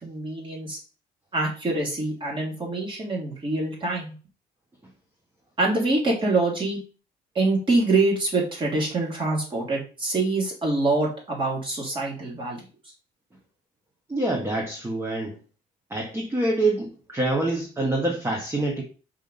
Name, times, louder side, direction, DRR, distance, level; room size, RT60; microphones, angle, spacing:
voice 1, 0.0-0.8 1.3-4.1 5.6-6.8 7.3-12.6, right 2 dB, 30° right, -2 dB, 3.2 m, -25 dB
voice 2, 14.1-15.4 15.9-18.8, right 2 dB, 15° right, 0 dB, 1.5 m, -26 dB
5.5 x 3.6 x 5.5 m, 0.36 s
cardioid pair, 110°, 17 cm